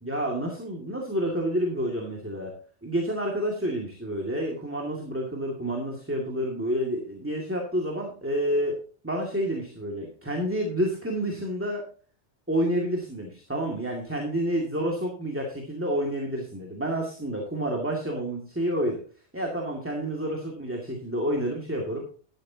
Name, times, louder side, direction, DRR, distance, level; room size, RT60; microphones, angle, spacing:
voice 1, 0.0-2.5 2.8-11.8 12.5-19.0 19.3-22.0, equal, 10° right, 0 dB, 2.2 m, -29 dB
13.0 x 11.5 x 2.9 m, 0.41 s
omnidirectional pair, 1.2 m